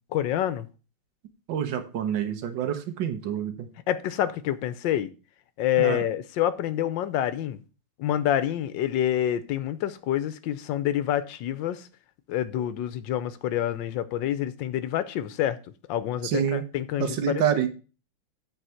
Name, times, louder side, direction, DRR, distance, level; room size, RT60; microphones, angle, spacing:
voice 1, 0.1-0.7 3.9-5.1 5.6-7.6 8.0-11.9 12.3-15.6 15.9-17.4, left 11 dB, 80° left, 1.3 m, -27 dB
voice 2, 1.5-3.7 5.8-6.0 16.2-16.6 17.0-17.7, right 9 dB, 75° right, 1.7 m, -27 dB
9.2 x 4.2 x 5.6 m
omnidirectional pair, 2.0 m